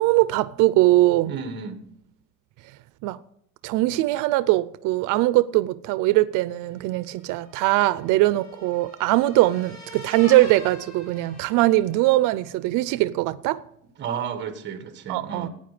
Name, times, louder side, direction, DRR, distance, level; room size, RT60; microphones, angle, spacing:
voice 1, 0.0-1.4 3.0-3.2 3.6-13.6 15.1-15.5, right 17 dB, 90° right, 0.5 m, -21 dB
voice 2, 1.2-1.8 14.0-15.5, right 7 dB, 35° right, 1.5 m, -32 dB
sound 1, 6.7-12.1, left 2 dB, 45° left, 7.2 m, -43 dB
15.5 x 9.6 x 5.0 m
cardioid pair, 180°, 31 cm